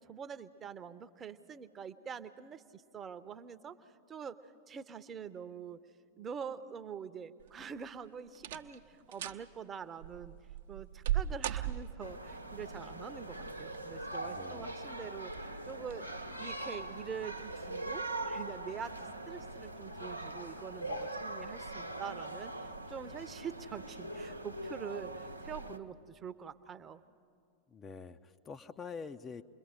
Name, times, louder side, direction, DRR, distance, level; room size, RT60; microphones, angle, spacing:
voice 1, 0.0-3.8 4.1-4.4 4.7-5.8 6.2-10.3 10.7-16.1 16.4-19.0 19.3-27.0, right 7 dB, 25° right, 12 dB, 0.7 m, -45 dB
sound 1, 7.4-7.9 8.4-8.8 9.1-9.4 10.0-12.2 13.4-14.0 14.4-14.5 15.3-15.5 15.9-16.0, right 11 dB, 55° right, 0.7 m, -37 dB
sound 2, 12.0-25.8, right 2 dB, 90° right, 0.8 m, -42 dB
voice 2, 14.2-14.7 27.7-29.4, left 5 dB, 20° left, 8 dB, 0.6 m, -46 dB
29.0 x 22.0 x 5.1 m, 2.2 s
figure-of-eight pair, 90°, 0 cm